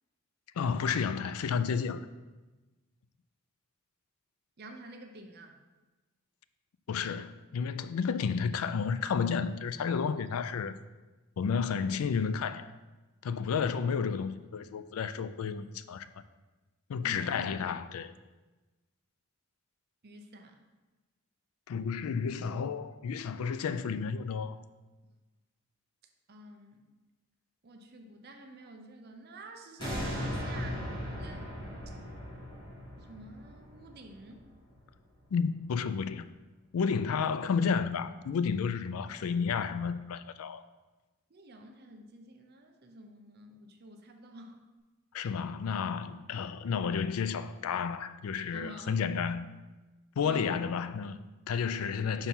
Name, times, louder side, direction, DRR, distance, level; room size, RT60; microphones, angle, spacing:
voice 1, 0.6-2.1 6.9-10.7 11.4-12.7 13.2-16.1 16.9-18.1 21.7-24.6 35.3-36.2 36.7-40.6 45.1-49.5 50.2-52.3, left 6 dB, 75° left, 0.4 m, -31 dB
voice 2, 4.6-5.6 17.0-17.5 20.0-20.6 26.3-26.8 27.6-30.9 31.2-31.5 33.0-34.5 41.3-44.6 48.5-49.0 50.2-50.5, right 2 dB, 45° right, 0.6 m, -49 dB
sound 1, 29.8-34.9 35.4-35.5, equal, 20° left, 2.3 m, -38 dB
5.6 x 4.5 x 5.4 m
head